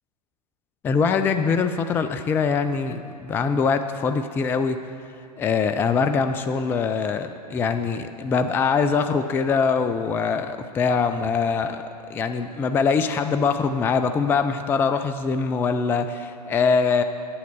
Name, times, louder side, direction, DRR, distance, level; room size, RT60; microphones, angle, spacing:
voice 1, 0.8-4.8 5.4-11.8 12.1-17.0, left 5 dB, 10° left, 9 dB, 0.3 m, -23 dB
8.5 x 7.6 x 6.8 m, 2.4 s
figure-of-eight pair, 105°, 21 cm